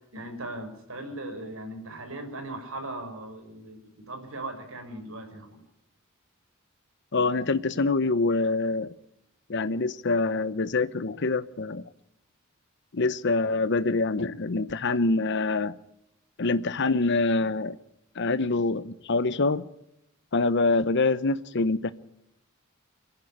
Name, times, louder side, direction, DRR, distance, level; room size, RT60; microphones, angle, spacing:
voice 1, 0.1-5.6, right 1 dB, 75° right, 5 dB, 5.4 m, -38 dB
voice 2, 7.1-8.9 9.5-11.8 12.9-15.8 16.4-17.7 18.2-19.6 20.3-21.9, left 3 dB, 60° left, 14 dB, 0.8 m, -25 dB
25.0 x 11.5 x 9.8 m, 0.84 s
head